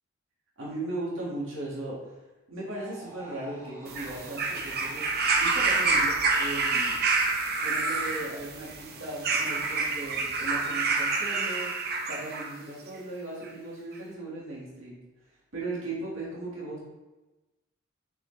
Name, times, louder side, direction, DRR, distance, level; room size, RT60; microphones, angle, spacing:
voice 1, 0.6-2.0 2.5-5.1 5.4-7.0 7.6-11.7 12.0-15.0 15.5-16.8, right 2 dB, 80° right, -6 dB, 1.9 m, -37 dB
sound 1, 2.7-5.9 8.5-9.2, right 1 dB, 35° right, 2.1 m, -49 dB
sound 2, 3.9-12.5 13.4-13.5, right 3 dB, 55° right, 0.7 m, -27 dB
6.6 x 4.8 x 3.3 m, 1.1 s
head